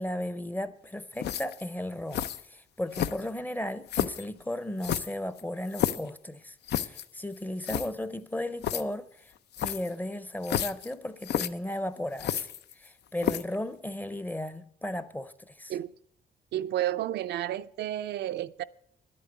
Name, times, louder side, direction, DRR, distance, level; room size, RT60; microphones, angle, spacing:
voice 1, 0.0-9.1 9.6-12.5 12.8-15.7, left 1 dB, 10° left, 0.6 m, -35 dB
sound 1, 1.2-1.6 2.1-2.4 2.9-3.4 3.9-4.3 4.8-6.1 6.7-7.1 7.4-7.5 7.6-7.9 8.6-8.8 9.5-9.9 10.4-10.9 11.2-11.5 12.2-12.9 13.2-13.6, left 10 dB, 85° left, 0.6 m, -30 dB
voice 2, 16.5-18.6, right 13 dB, 80° right, 0.5 m, -31 dB
11.0 x 8.5 x 8.1 m
cardioid pair, 125°, 17 cm